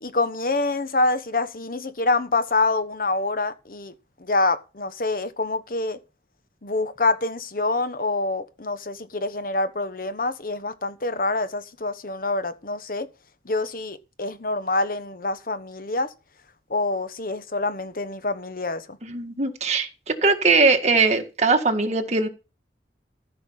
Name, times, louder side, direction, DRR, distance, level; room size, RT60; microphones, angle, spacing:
voice 1, 0.0-3.9 4.2-6.0 6.6-13.1 13.4-16.1 16.7-19.0, left 2 dB, 50° left, 1.1 m, -26 dB
voice 2, 19.0-19.9 20.2-22.3, right 4 dB, 40° right, 1.7 m, -20 dB
14.0 x 5.7 x 5.7 m
head